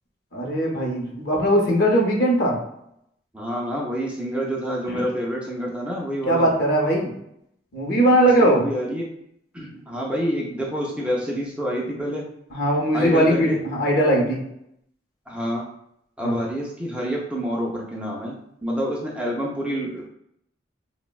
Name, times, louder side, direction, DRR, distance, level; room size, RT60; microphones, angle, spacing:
voice 1, 0.3-2.6 4.9-5.1 6.2-7.1 7.7-8.7 12.5-14.4 16.2-16.4, right 1 dB, 55° left, 0 dB, 0.6 m, -20 dB
voice 2, 3.3-6.5 8.4-9.1 9.5-12.3 12.9-13.6 15.3-15.7 16.2-18.4 18.6-20.1, equal, 5° right, -3 dB, 0.3 m, -27 dB
3.2 x 2.0 x 2.2 m, 0.75 s
head